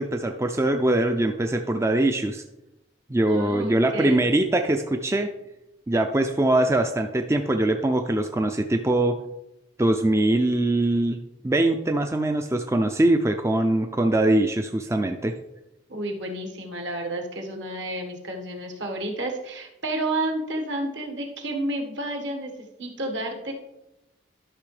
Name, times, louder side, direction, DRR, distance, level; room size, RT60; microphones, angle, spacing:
voice 1, 0.0-2.4 3.1-5.3 5.9-9.1 9.8-11.2 11.4-15.3, right 1 dB, 15° right, 5 dB, 0.4 m, -22 dB
voice 2, 3.3-4.2 15.9-22.5 22.8-23.5, right 1 dB, 65° right, 2 dB, 1.5 m, -31 dB
12.0 x 6.0 x 3.3 m, 0.93 s
head